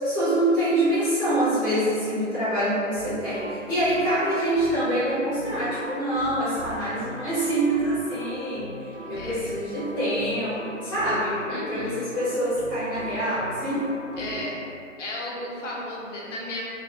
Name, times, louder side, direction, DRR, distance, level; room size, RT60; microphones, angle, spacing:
voice 1, 0.0-13.8 14.2-14.3, right 1 dB, 15° left, -15 dB, 0.5 m, -25 dB
sound 1, 2.9-14.4, right 1 dB, 50° right, 0.5 m, -39 dB
voice 2, 9.0-9.6 11.5-12.1 14.2-14.6 15.0-16.6, left 1 dB, 65° left, -4 dB, 0.5 m, -34 dB
2.2 x 2.1 x 2.7 m, 2.6 s
hypercardioid pair, 155°, 40 cm